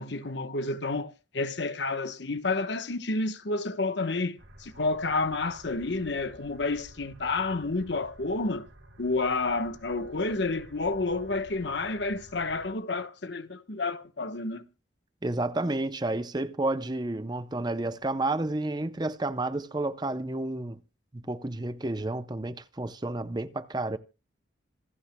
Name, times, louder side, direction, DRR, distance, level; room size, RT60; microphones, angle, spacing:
voice 1, 0.0-8.7 9.0-14.6, left 3 dB, 65° left, 1.1 m, -30 dB
sound 1, 4.4-12.7, right 1 dB, 75° right, 2.6 m, -52 dB
voice 2, 15.2-20.8 21.1-24.0, right 2 dB, 20° right, 0.6 m, -31 dB
26.0 x 8.9 x 2.2 m
head